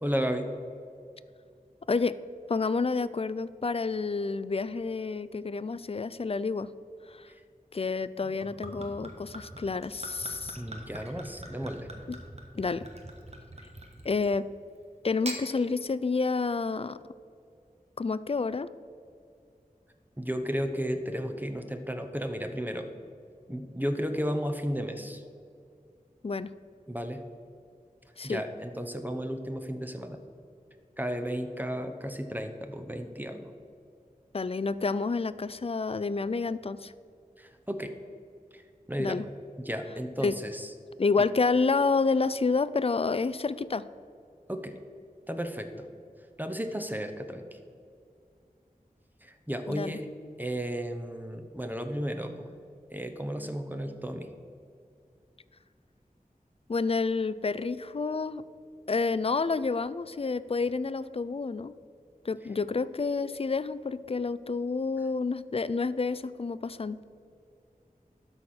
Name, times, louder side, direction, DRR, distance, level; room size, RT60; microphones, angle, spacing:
voice 1, 0.0-0.5 7.3-7.4 10.6-11.9 20.2-22.9 23.5-25.2 26.9-27.2 28.2-30.2 31.0-33.5 37.4-37.9 38.5-38.6 38.9-39.3 39.6-40.7 44.5-44.8 45.3-45.9 46.4-47.6 49.2-50.1 50.4-52.5 52.9-54.3, equal, 10° right, 5 dB, 0.8 m, -33 dB
voice 2, 1.9-2.2 2.5-6.7 7.1-7.3 7.7-10.6 12.1-12.2 12.5-12.8 14.0-14.5 15.0-17.0 18.0-18.7 26.2-26.5 28.2-28.4 34.3-36.9 39.0-39.2 40.2-40.4 41.0-43.9 49.7-50.0 56.7-58.4 58.9-61.7 62.2-67.0, left 4 dB, 40° left, 16 dB, 0.3 m, -29 dB
Gurgling / Chink clink / Liquid, 8.2-14.4 15.0-15.4, right 1 dB, 45° right, 1.3 m, -43 dB
12.0 x 4.3 x 6.2 m, 2.4 s
wide cardioid pair, 40°, 15 cm